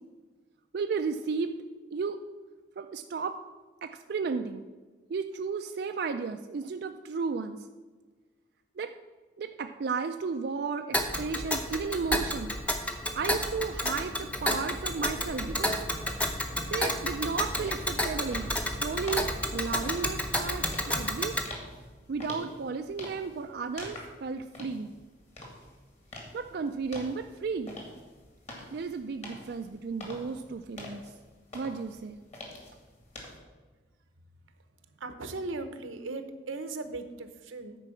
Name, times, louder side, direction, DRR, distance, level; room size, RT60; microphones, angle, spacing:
voice 1, 0.7-1.6 1.9-2.2 2.8-3.4 3.8-4.6 5.1-7.6 8.8-8.9 9.4-12.6 13.1-15.8 16.7-21.4 22.1-24.9 26.3-27.8 28.7-31.0 31.5-32.2, right 5 dB, 55° right, 6 dB, 0.3 m, -34 dB
Tick, 10.9-21.5, left 1 dB, 5° left, 0.7 m, -31 dB
sound 1, 17.6-33.4, left 1 dB, 35° left, 1.9 m, -46 dB
voice 2, 35.0-37.8, right 3 dB, 90° right, 9 dB, 0.9 m, -38 dB
9.9 x 4.6 x 7.0 m, 1.3 s
head